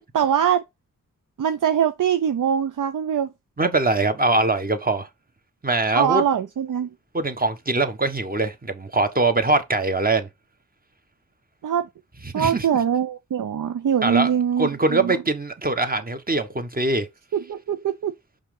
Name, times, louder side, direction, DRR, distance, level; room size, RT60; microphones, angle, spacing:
voice 1, 0.1-0.6 1.4-3.3 5.9-6.9 11.6-11.9 12.3-15.1 17.3-18.1, right 8 dB, 75° right, 0.6 m, -22 dB
voice 2, 3.6-5.1 5.6-6.2 7.1-10.3 12.3-12.7 14.0-14.3 14.6-17.1, right 2 dB, 25° right, 1.3 m, -22 dB
5.7 x 5.1 x 5.3 m
wide cardioid pair, 75°, 32 cm